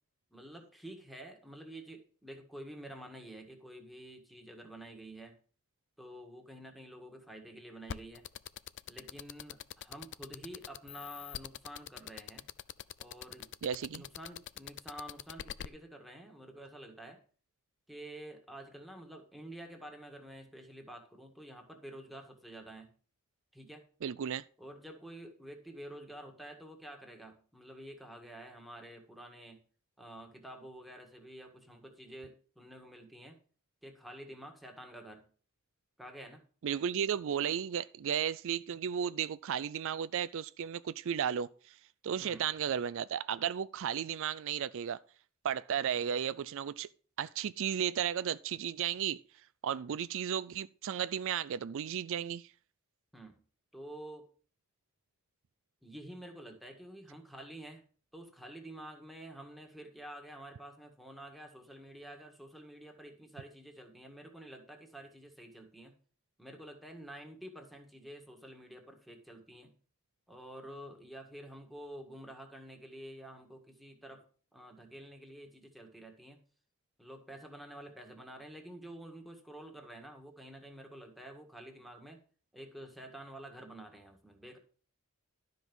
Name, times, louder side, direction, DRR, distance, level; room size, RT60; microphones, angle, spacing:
voice 1, 0.3-5.4 6.0-8.2 8.9-12.4 13.0-13.5 13.9-17.2 17.9-22.9 23.5-23.8 24.6-29.6 30.0-33.4 33.8-35.3 36.0-36.4 42.2-42.5 53.1-53.4 53.7-54.3 55.8-57.8 58.1-65.9 66.4-69.7 70.3-74.2 74.5-76.4 77.0-82.2 82.5-84.6, right 1 dB, ahead, 1.7 m, -49 dB
sound 1, 7.9-15.7, left 10 dB, 55° left, 0.4 m, -43 dB
voice 2, 13.6-14.0 24.0-24.4 36.6-41.8 42.0-45.0 45.4-46.9 47.2-49.2 49.6-52.5, right 8 dB, 60° right, 0.4 m, -34 dB
12.0 x 5.4 x 6.1 m
head